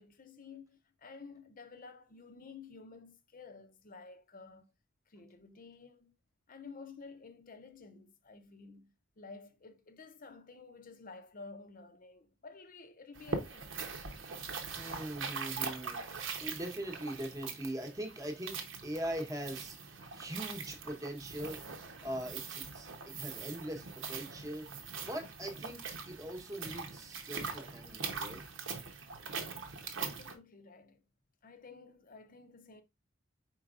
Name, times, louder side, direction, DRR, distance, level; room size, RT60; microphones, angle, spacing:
voice 1, 0.0-4.7 5.1-6.1 6.5-13.8 29.9-31.0 31.4-32.8, left 4 dB, 45° left, 0.7 m, -52 dB
sound 1, 13.2-30.3, right 5 dB, 70° right, 0.9 m, -42 dB
voice 2, 14.8-18.6 18.8-21.6 22.0-24.7 25.0-28.4, right 1 dB, 15° right, 1.0 m, -41 dB
4.5 x 4.5 x 2.4 m
head